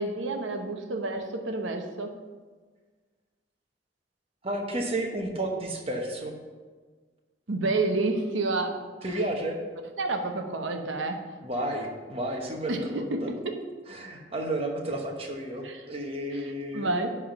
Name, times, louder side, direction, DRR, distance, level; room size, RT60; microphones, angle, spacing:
voice 1, 0.0-2.2 7.5-8.8 10.0-11.2 12.7-13.6 15.6-15.8 16.4-17.1, right 2 dB, 85° right, 5 dB, 0.9 m, -29 dB
voice 2, 4.4-6.3 9.0-9.6 11.4-13.3 13.9-17.0, right 1 dB, 30° right, 1 dB, 1.1 m, -32 dB
10.5 x 3.6 x 5.9 m, 1.4 s
head